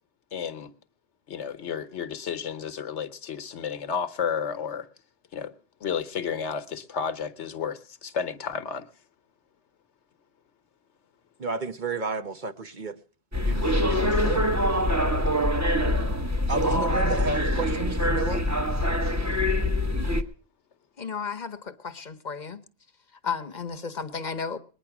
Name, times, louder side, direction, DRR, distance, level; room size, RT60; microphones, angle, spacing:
voice 1, 0.3-0.7 1.3-4.9 5.3-5.5 5.8-8.9, left 7 dB, 75° left, 1.3 m, -32 dB
voice 2, 11.4-13.0 13.4-14.5 16.5-18.5, right 3 dB, 45° right, 1.0 m, -32 dB
sound 1, 13.3-20.2, left 1 dB, 15° right, 1.0 m, -24 dB
voice 3, 21.0-22.6 23.2-24.6, left 5 dB, 40° left, 1.0 m, -33 dB
20.5 x 10.0 x 5.9 m
omnidirectional pair, 1.2 m